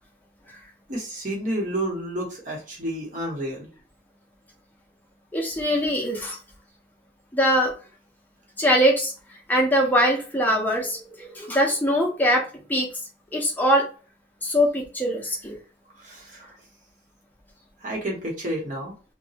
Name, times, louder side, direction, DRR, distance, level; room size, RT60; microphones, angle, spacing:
voice 1, 0.9-3.7 16.0-16.5 17.8-18.9, right 1 dB, 45° right, -2 dB, 1.1 m, -30 dB
voice 2, 5.3-6.4 7.3-7.7 8.6-9.1 9.5-12.9 13.3-13.8 14.4-15.6, equal, 10° left, -1 dB, 0.6 m, -22 dB
2.9 x 2.2 x 2.8 m, 0.35 s
head